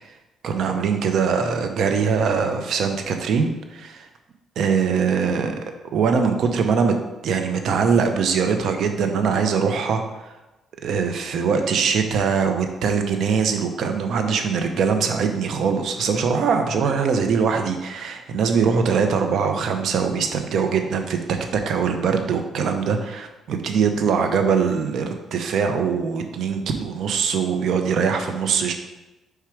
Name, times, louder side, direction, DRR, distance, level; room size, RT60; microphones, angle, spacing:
voice 1, 0.4-4.1 4.6-5.5 5.9-7.0 7.2-10.3 10.8-28.7, right 6 dB, 70° right, 6 dB, 0.7 m, -22 dB
4.8 x 4.5 x 4.8 m, 1.0 s
cardioid pair, 90°, 0 cm